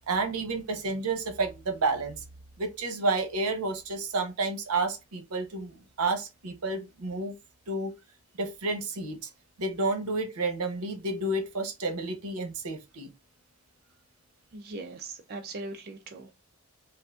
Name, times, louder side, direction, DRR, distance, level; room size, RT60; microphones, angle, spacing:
voice 1, 0.1-2.2 2.6-7.3 7.7-7.9 8.4-9.3 9.6-13.1, right 3 dB, 80° right, 0.8 m, -30 dB
voice 2, 14.5-16.3, right 3 dB, 45° right, 0.4 m, -40 dB
3.6 x 2.4 x 2.3 m
head